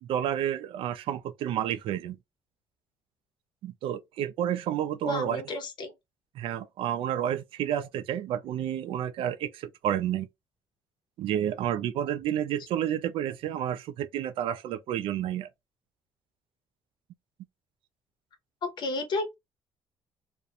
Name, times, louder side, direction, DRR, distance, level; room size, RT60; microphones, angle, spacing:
voice 1, 0.0-2.2 3.6-5.4 6.4-10.3 11.2-15.5, right 10 dB, 80° right, 0.4 m, -30 dB
voice 2, 5.0-5.9 18.6-19.3, left 2 dB, 55° left, 0.8 m, -32 dB
2.4 x 2.1 x 2.7 m
cardioid pair, 105°, 9 cm